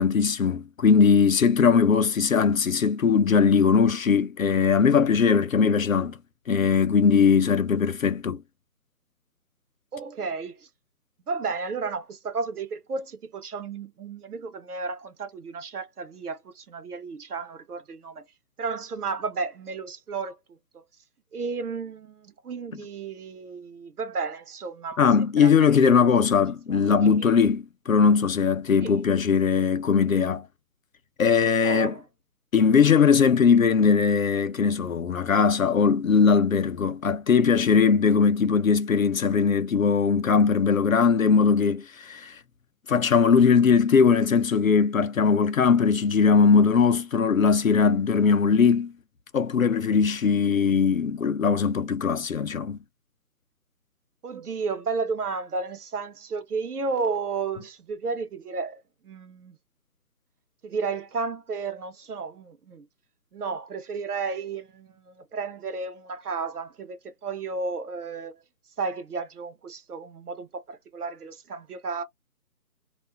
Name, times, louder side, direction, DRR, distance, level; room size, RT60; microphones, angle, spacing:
voice 1, 0.0-6.2 6.5-8.4 25.0-30.5 31.2-31.9 32.5-42.4 42.9-48.9 49.3-52.8, left 6 dB, 60° left, 0.5 m, -20 dB
voice 2, 9.9-10.7 11.3-18.3 18.6-20.8 21.3-26.2 26.7-27.3 28.8-29.0 31.6-32.0 38.1-38.3 54.2-59.6 60.6-62.8 63.3-68.3 68.8-72.0, right 4 dB, 70° right, 0.8 m, -33 dB
2.4 x 2.0 x 3.3 m
hypercardioid pair, 175°, 47 cm